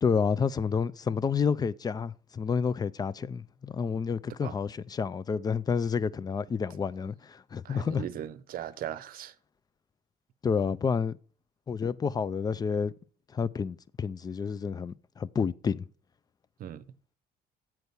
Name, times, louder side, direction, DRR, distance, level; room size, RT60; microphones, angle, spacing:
voice 1, 0.0-8.0 10.4-11.2 11.7-12.9 13.3-15.9, left 6 dB, 25° left, 0.4 m, -29 dB
voice 2, 7.6-9.3 16.6-16.8, right 10 dB, 60° right, 0.7 m, -38 dB
8.0 x 4.5 x 6.8 m
cardioid pair, 110°, 17 cm